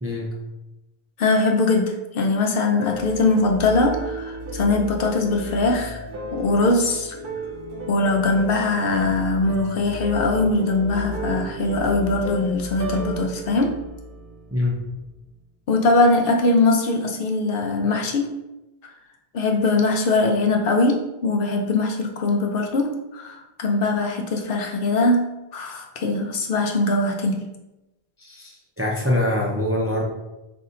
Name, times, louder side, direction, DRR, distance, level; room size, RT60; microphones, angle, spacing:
voice 1, 0.0-0.3 14.5-14.8 28.2-30.0, left 1 dB, 20° right, -3 dB, 0.5 m, -24 dB
voice 2, 1.2-6.0 6.3-7.2 7.9-13.7 15.7-18.3 19.3-25.3 25.5-27.4, left 2 dB, 70° left, 2 dB, 0.8 m, -21 dB
sound 1, 2.8-14.9, equal, 65° right, 0.8 m, -33 dB
4.0 x 2.7 x 3.7 m, 0.97 s
omnidirectional pair, 1.0 m